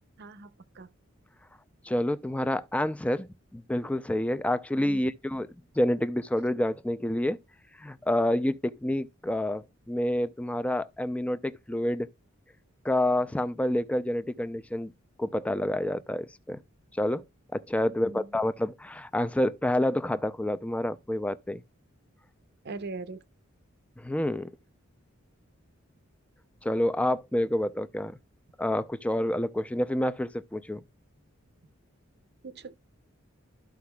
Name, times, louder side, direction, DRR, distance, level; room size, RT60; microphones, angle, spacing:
voice 1, 0.2-0.5 0.7-0.9 4.8-5.1 17.9-18.3 22.6-23.2 32.4-32.7, right 3 dB, 55° right, 0.6 m, -40 dB
voice 2, 1.9-3.3 3.5-5.5 5.8-7.4 7.8-12.1 12.8-14.9 15.2-16.6 17.0-17.2 17.5-21.6 24.0-24.5 26.6-28.2 28.6-30.8, left 1 dB, 5° left, 0.4 m, -28 dB
13.0 x 4.7 x 2.3 m
head